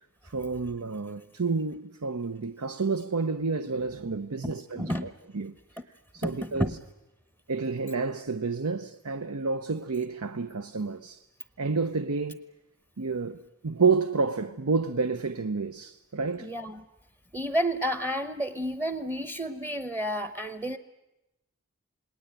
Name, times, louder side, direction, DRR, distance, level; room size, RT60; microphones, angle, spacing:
voice 1, 0.2-5.5 6.1-6.7 7.5-11.2 11.6-12.5 13.0-16.5, right 4 dB, 85° right, 0.8 m, -29 dB
voice 2, 4.4-5.1 6.2-6.8 16.4-16.8 17.3-20.8, equal, 15° right, 0.9 m, -31 dB
28.5 x 20.0 x 9.1 m
head